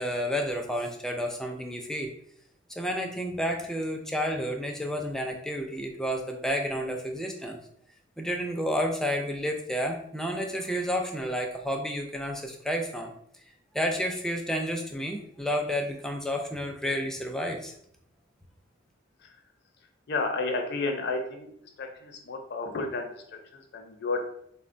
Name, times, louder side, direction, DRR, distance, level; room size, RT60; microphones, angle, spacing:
voice 1, 0.0-2.1 2.7-7.6 8.2-13.1 13.7-17.7, equal, 5° left, 2 dB, 0.3 m, -30 dB
voice 2, 20.1-21.5 21.8-24.3, left 3 dB, 60° left, 3 dB, 0.5 m, -32 dB
3.6 x 2.1 x 2.5 m, 0.68 s
head